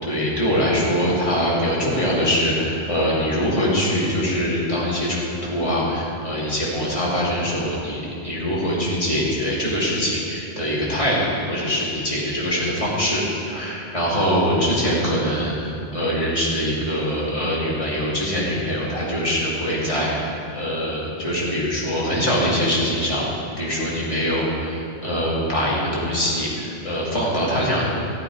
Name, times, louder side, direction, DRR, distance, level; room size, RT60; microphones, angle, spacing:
voice 1, 0.0-13.2 13.5-23.2 23.6-27.9, equal, 30° left, -7 dB, 2.8 m, -23 dB
15.0 x 8.6 x 4.8 m, 2.6 s
omnidirectional pair, 1.2 m